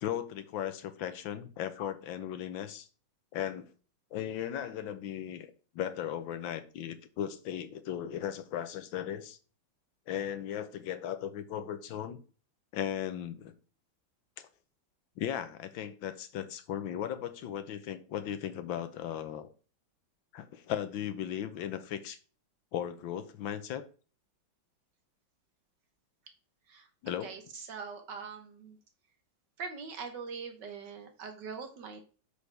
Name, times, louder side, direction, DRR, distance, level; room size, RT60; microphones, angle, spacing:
voice 1, 0.0-2.9 3.3-3.7 4.1-5.5 5.7-9.4 10.1-12.2 12.7-13.5 14.4-14.5 15.2-19.5 20.3-22.2 22.7-23.8 27.0-27.3, left 10 dB, 75° left, 1.5 m, -37 dB
voice 2, 27.2-28.8 29.6-32.0, right 5 dB, 60° right, 1.6 m, -42 dB
8.1 x 6.4 x 3.4 m
omnidirectional pair, 2.2 m